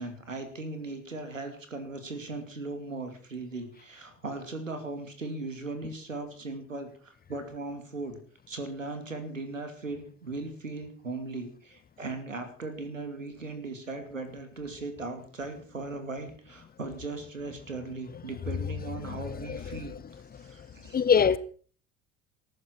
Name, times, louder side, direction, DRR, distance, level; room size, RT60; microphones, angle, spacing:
voice 1, 0.0-8.2 8.5-19.9 20.4-21.0, right 3 dB, 85° right, 2.6 m, -38 dB
voice 2, 19.5-19.8 20.9-21.4, left 7 dB, 25° left, 1.0 m, -23 dB
18.5 x 14.0 x 4.6 m
figure-of-eight pair, 60°, 38 cm